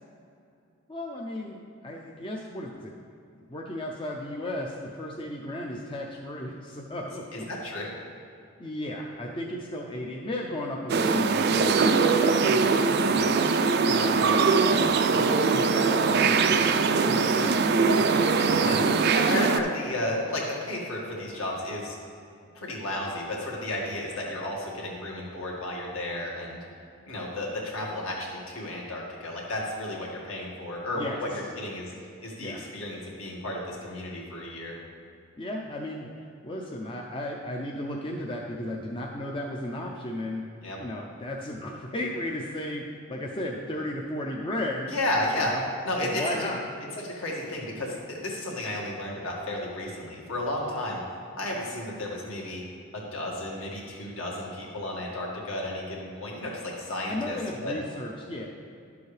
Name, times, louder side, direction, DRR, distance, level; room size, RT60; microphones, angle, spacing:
voice 1, 0.9-1.6 1.8-2.9 3.4-7.5 8.6-13.3 13.9-16.7 17.0-17.6 30.9-31.4 32.4-32.6 35.4-36.1 36.4-40.5 40.8-44.9 45.4-45.6 46.0-46.6 57.1-58.5, left 1 dB, 25° left, -1 dB, 0.5 m, -35 dB
voice 2, 7.3-7.9 18.0-22.0 22.5-26.6 27.1-31.9 32.2-34.7 40.6-40.8 44.9-45.5 45.9-46.5 47.0-51.0 51.3-52.6 52.9-57.7, left 1 dB, 70° left, -3 dB, 1.7 m, -33 dB
sound 1, 10.9-19.6, right 4 dB, 45° right, 0.4 m, -22 dB
11.0 x 7.0 x 3.3 m, 2.5 s
head